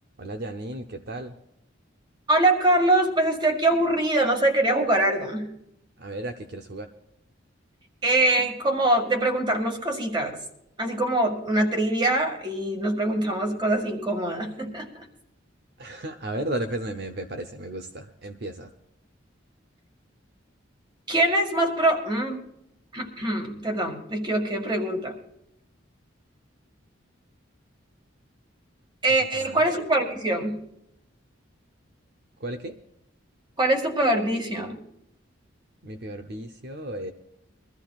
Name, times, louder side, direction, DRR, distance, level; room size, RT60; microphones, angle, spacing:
voice 1, 0.2-1.3 6.0-6.9 15.8-18.7 29.3-29.6 32.4-32.8 35.8-37.1, right 1 dB, 55° right, 6 dB, 0.8 m, -34 dB
voice 2, 2.3-5.5 8.0-10.3 10.8-15.1 21.1-22.4 22.9-25.1 29.0-30.6 33.6-34.8, right 1 dB, 25° right, 3 dB, 2.0 m, -23 dB
23.0 x 14.0 x 2.4 m, 0.79 s
head